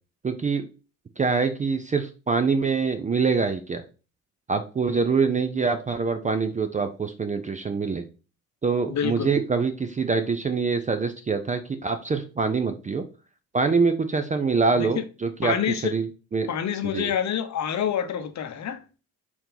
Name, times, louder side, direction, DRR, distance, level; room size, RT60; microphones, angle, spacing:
voice 1, 0.2-0.7 1.2-3.8 4.5-8.0 8.6-13.0 13.5-16.5 16.8-17.1, right 4 dB, 20° right, 0.5 m, -25 dB
voice 2, 8.9-9.3 14.8-14.9 15.4-15.9 16.5-18.8, left 9 dB, 40° left, 0.9 m, -27 dB
4.3 x 2.8 x 3.9 m
hypercardioid pair, 55°, 41 cm